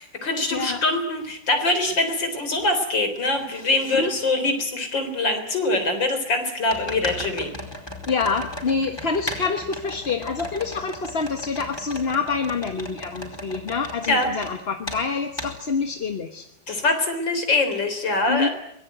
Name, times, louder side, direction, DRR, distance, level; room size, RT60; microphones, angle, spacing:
voice 1, 0.0-7.5 14.1-14.3 16.7-18.5, left 2 dB, 75° left, 7 dB, 4.5 m, -23 dB
voice 2, 0.5-0.8 4.0-4.1 8.1-16.4 18.3-18.5, left 5 dB, 35° left, 6 dB, 1.4 m, -26 dB
sound 1, 1.2-1.3 1.9-2.7 2.9-4.0 5.0-5.1 6.7-14.5 14.9-15.0 15.4-15.5, left 1 dB, 10° left, 4.7 m, -36 dB
24.5 x 20.5 x 9.2 m, 0.77 s
omnidirectional pair, 2.0 m